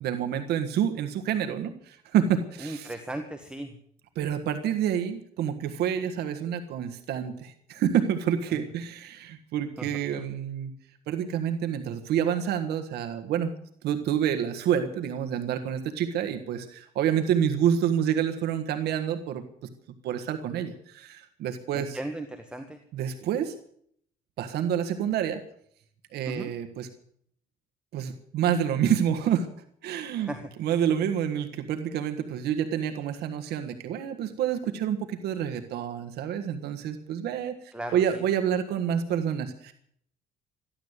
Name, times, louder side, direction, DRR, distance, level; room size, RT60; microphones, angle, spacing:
voice 1, 0.0-2.9 4.1-10.7 11.1-13.5 13.8-19.4 20.0-22.0 22.9-23.5 24.4-25.4 26.1-26.9 27.9-29.5 29.8-30.3 30.6-37.5 37.9-39.7, right 9 dB, 75° right, 7 dB, 1.5 m, -28 dB
voice 2, 2.6-3.8 8.5-8.7 9.8-9.9 10.1-10.3 21.7-22.8 26.3-26.5 30.1-30.8 37.7-38.2, right 1 dB, 5° right, 5 dB, 1.5 m, -37 dB
14.5 x 11.5 x 8.1 m, 0.66 s
cardioid pair, 110°, 17 cm